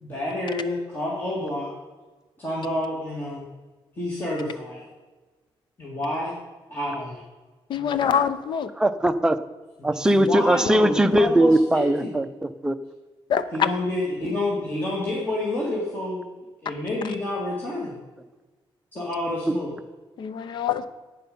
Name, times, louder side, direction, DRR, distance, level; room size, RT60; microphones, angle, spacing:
voice 1, 0.0-1.7 2.4-3.4 4.0-4.8 5.8-6.3 6.7-7.2 7.7-8.1 9.8-12.2 13.5-16.2 16.6-18.0 18.9-19.7, left 1 dB, 20° left, -5 dB, 2.3 m, -29 dB
voice 2, 7.7-8.7 13.3-13.7 20.2-20.9, left 8 dB, 60° left, 13 dB, 0.7 m, -24 dB
voice 3, 8.8-9.4 9.8-12.8, right 1 dB, 10° right, 9 dB, 0.5 m, -20 dB
11.5 x 9.1 x 5.4 m, 1.2 s
wide cardioid pair, 165°, 9 cm